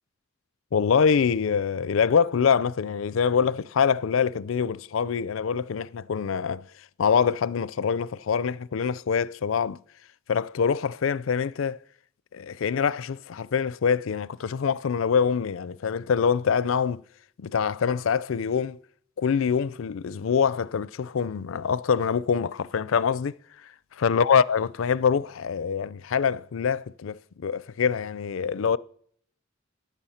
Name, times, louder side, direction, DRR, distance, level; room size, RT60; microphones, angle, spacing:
voice 1, 0.7-6.7 7.0-9.8 10.3-11.8 12.3-17.0 17.4-18.8 19.2-23.4 24.0-28.8, left 6 dB, 80° left, 0.4 m, -25 dB
15.5 x 10.0 x 5.7 m
head